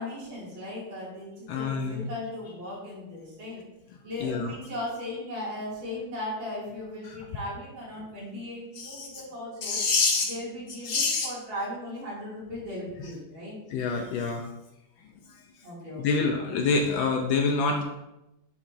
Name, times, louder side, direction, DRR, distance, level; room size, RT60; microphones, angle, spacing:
voice 1, 0.0-3.6 4.0-9.8 10.3-13.6 15.6-16.4, left 1 dB, 70° right, -7 dB, 3.4 m, -37 dB
voice 2, 1.5-2.1 4.2-4.5 7.0-7.1 8.8-9.2 9.6-10.3 10.8-11.3 13.7-14.4 16.0-17.8, left 4 dB, 75° left, 3 dB, 1.4 m, -26 dB
10.0 x 4.9 x 2.6 m, 0.90 s
omnidirectional pair, 2.2 m